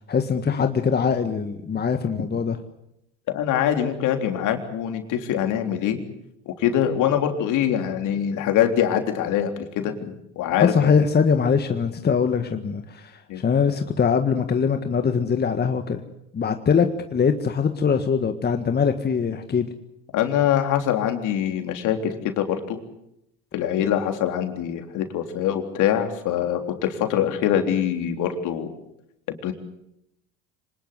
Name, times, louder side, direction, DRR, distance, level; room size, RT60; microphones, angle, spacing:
voice 1, 0.1-2.6 10.6-16.0 16.3-19.7, left 6 dB, 30° left, 1.7 m, -22 dB
voice 2, 3.3-6.0 6.5-10.7 13.3-13.4 20.1-22.8 23.5-28.7 29.3-29.5, left 10 dB, 60° left, 3.6 m, -24 dB
26.0 x 19.5 x 8.1 m
hypercardioid pair, 80°, 35 cm